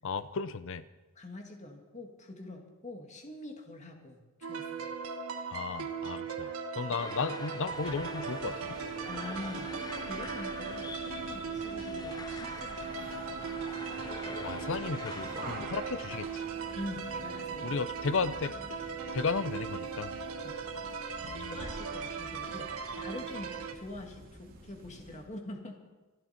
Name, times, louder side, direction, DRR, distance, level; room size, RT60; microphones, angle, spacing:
voice 1, 0.0-0.8 5.5-8.8 14.4-16.4 17.6-18.5 19.1-20.2 21.2-21.6, left 4 dB, 60° left, 15 dB, 0.6 m, -34 dB
voice 2, 1.2-4.9 9.1-13.2 16.8-17.8 20.4-20.6 21.5-25.8, left 1 dB, 35° left, 2 dB, 2.2 m, -44 dB
sound 1, 4.4-23.7, right 5 dB, 80° right, 1.3 m, -38 dB
sound 2, 7.0-15.6, left 3 dB, 20° left, 0.6 m, -45 dB
sound 3, 7.6-25.3, right 1 dB, 45° right, 2.4 m, -49 dB
25.5 x 11.5 x 4.4 m, 1.2 s
head